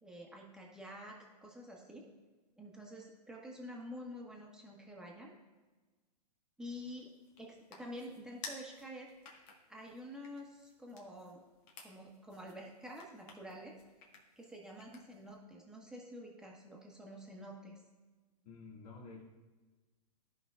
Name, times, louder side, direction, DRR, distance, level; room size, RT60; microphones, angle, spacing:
voice 1, 0.0-2.2 2.6-5.3 6.6-7.1 7.4-9.1 9.7-11.4 11.8-13.8 14.4-17.8, equal, 5° right, -2 dB, 1.4 m, -48 dB
sound 1, 6.7-15.4, left 4 dB, 45° left, 1.6 m, -55 dB
voice 2, 18.4-19.2, left 4 dB, 70° left, -3 dB, 2.1 m, -50 dB
14.0 x 5.5 x 2.5 m, 1.3 s
hypercardioid pair, 130°, 21 cm